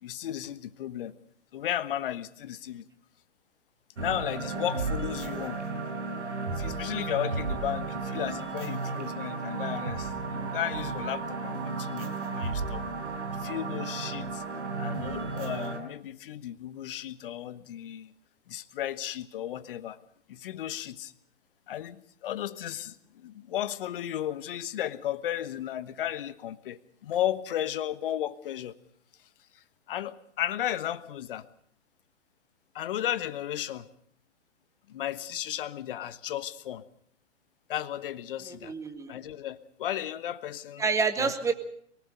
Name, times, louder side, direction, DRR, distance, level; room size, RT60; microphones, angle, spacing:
voice 1, 0.0-1.1 1.5-2.9 4.0-5.6 6.5-12.8 13.4-14.4 14.8-18.1 18.5-20.0 20.3-21.1 21.7-28.7 29.5-31.4 32.7-33.9 34.9-36.8 37.7-38.7 39.1-40.8 41.2-41.3, left 11 dB, 50° left, 14 dB, 1.3 m, -34 dB
sound 1, 4.0-15.8, right 4 dB, 70° right, 4.8 m, -34 dB
voice 2, 38.4-39.1 40.8-41.5, right 5 dB, 10° right, 8 dB, 1.6 m, -28 dB
23.5 x 18.5 x 6.6 m, 0.64 s
figure-of-eight pair, 120°, 36 cm